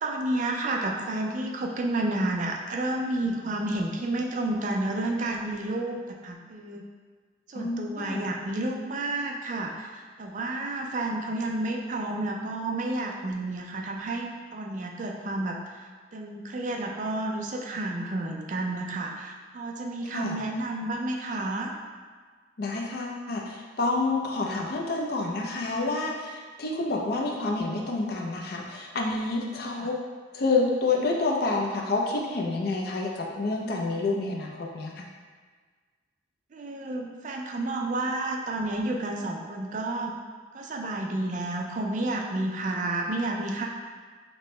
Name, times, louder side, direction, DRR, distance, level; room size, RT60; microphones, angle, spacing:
voice 1, 0.0-6.8 7.5-15.6 16.1-21.7 29.7-29.9 36.5-40.1 40.5-43.7, right 2 dB, 40° right, 1 dB, 0.3 m, -30 dB
voice 2, 7.5-8.2 20.1-20.4 22.6-29.9 30.3-35.1, left 3 dB, 50° left, -1 dB, 0.4 m, -28 dB
4.3 x 2.1 x 3.1 m, 1.5 s
head